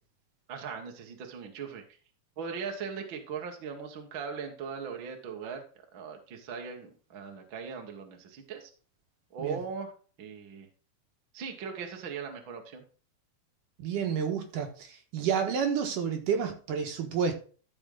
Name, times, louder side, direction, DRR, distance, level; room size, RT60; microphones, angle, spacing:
voice 1, 0.5-1.8 2.4-8.7 9.3-9.9 10.2-10.7 11.3-12.8, right 6 dB, 50° right, 3 dB, 1.5 m, -39 dB
voice 2, 13.8-17.3, right 7 dB, 65° right, 4 dB, 2.7 m, -30 dB
13.5 x 5.3 x 3.9 m, 0.39 s
omnidirectional pair, 4.3 m